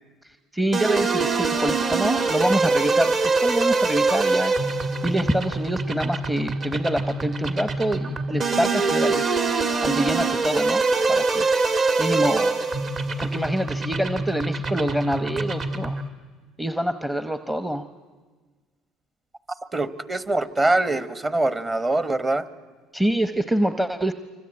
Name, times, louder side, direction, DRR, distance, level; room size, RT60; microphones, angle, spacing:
voice 1, 0.5-4.6 5.0-9.2 9.8-10.8 11.1-11.5 12.0-12.7 13.2-16.0 16.6-17.9 22.9-24.1, right 1 dB, 5° right, 10 dB, 0.9 m, -25 dB
sound 1, 0.7-16.1, right 3 dB, 45° right, 2.3 m, -24 dB
voice 2, 19.7-22.4, right 2 dB, 25° right, 13 dB, 1.3 m, -23 dB
25.5 x 25.0 x 8.8 m, 1.4 s
cardioid pair, 105°, 0 cm